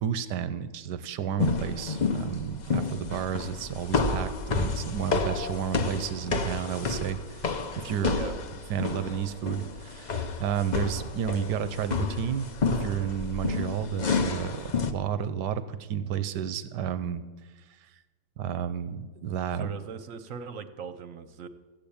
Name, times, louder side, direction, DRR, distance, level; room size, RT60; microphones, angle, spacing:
voice 1, 0.0-8.2 8.7-17.2 17.8-17.9 18.4-19.7, right 8 dB, 90° right, 13 dB, 1.3 m, -32 dB
sound 1, 1.4-14.9, left 4 dB, 45° left, 0.5 m, -30 dB
voice 2, 19.6-21.5, right 6 dB, 55° right, 11 dB, 1.1 m, -39 dB
14.0 x 8.9 x 8.6 m, 1.3 s
omnidirectional pair, 1.8 m